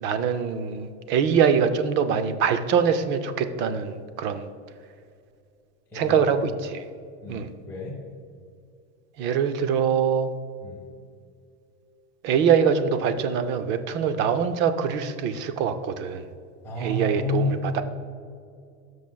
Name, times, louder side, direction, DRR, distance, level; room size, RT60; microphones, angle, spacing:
voice 1, 0.0-4.5 5.9-6.8 7.3-7.5 9.2-10.3 12.2-16.3 16.8-17.8, right 7 dB, 30° right, 10 dB, 0.4 m, -23 dB
voice 2, 7.2-8.0 10.6-10.8 16.6-17.8, left 2 dB, 5° left, -7 dB, 1.2 m, -30 dB
16.0 x 6.3 x 2.2 m, 2.4 s
supercardioid pair, 165°, 36 cm